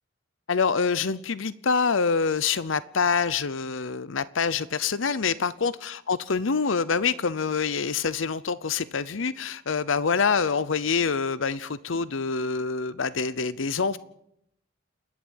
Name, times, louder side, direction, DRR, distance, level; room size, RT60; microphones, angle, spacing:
voice 1, 0.5-14.0, left 5 dB, 75° left, 0.7 m, -26 dB
29.0 x 11.0 x 8.9 m
head